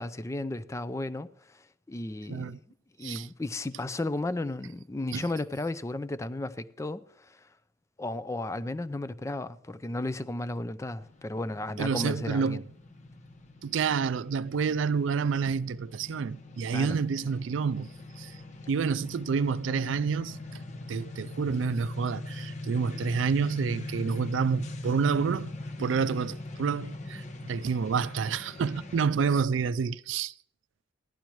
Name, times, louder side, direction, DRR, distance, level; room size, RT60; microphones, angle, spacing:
voice 1, 0.0-2.6 3.0-7.5 8.0-12.6 16.7-17.0, left 2 dB, 15° left, 0.4 m, -34 dB
voice 2, 2.3-2.6 3.0-3.3 5.1-5.3 11.8-12.6 13.6-17.9 18.2-18.3 18.7-20.4 20.9-25.5 25.8-30.3, right 5 dB, 80° right, 0.4 m, -28 dB
sound 1, 11.0-29.1, left 2 dB, 40° left, 0.8 m, -41 dB
15.5 x 11.5 x 3.1 m
head